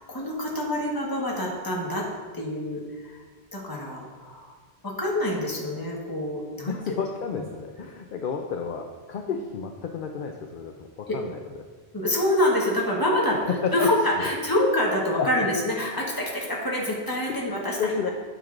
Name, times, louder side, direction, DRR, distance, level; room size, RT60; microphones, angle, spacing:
voice 1, 0.0-2.0 2.3-3.2 3.5-4.5 4.8-6.9 7.3-7.5 11.1-11.2 11.9-18.1, left 1 dB, 20° left, -3 dB, 1.3 m, -26 dB
voice 2, 6.7-11.7 13.8-13.9 15.2-15.3 17.8-18.1, left 6 dB, 60° left, 4 dB, 0.7 m, -32 dB
8.9 x 6.4 x 2.5 m, 1.4 s
omnidirectional pair, 1.1 m